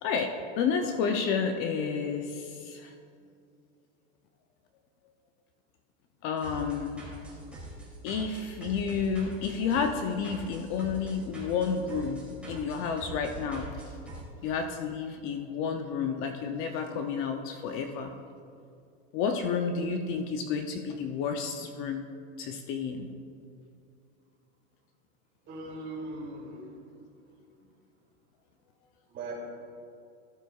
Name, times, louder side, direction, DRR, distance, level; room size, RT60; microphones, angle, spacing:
voice 1, 0.0-2.9 6.2-7.1 8.0-13.7 14.4-18.1 19.1-22.0 22.4-23.1, left 6 dB, 40° left, 5 dB, 0.6 m, -31 dB
sound 1, 6.4-14.2, right 2 dB, 5° right, 2.8 m, -43 dB
voice 2, 25.5-26.7 29.1-29.3, right 2 dB, 30° right, -3 dB, 2.7 m, -39 dB
14.0 x 12.0 x 2.4 m, 2.4 s
supercardioid pair, 150°, 34 cm